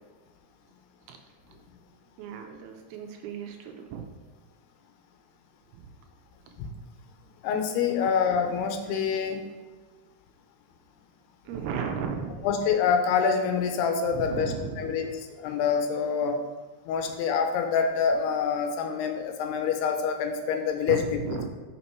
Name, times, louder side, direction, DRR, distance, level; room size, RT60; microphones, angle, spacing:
voice 1, 2.2-4.1 5.7-5.9 8.0-8.1 11.5-12.5 14.1-15.1 20.9-21.5, right 6 dB, 80° right, 5 dB, 2.4 m, -35 dB
voice 2, 7.4-9.5 12.4-15.1 15.4-16.4 16.9-21.0, left 6 dB, 85° left, 5 dB, 2.6 m, -26 dB
6.0 x 5.5 x 4.4 m, 1.3 s
omnidirectional pair, 4.7 m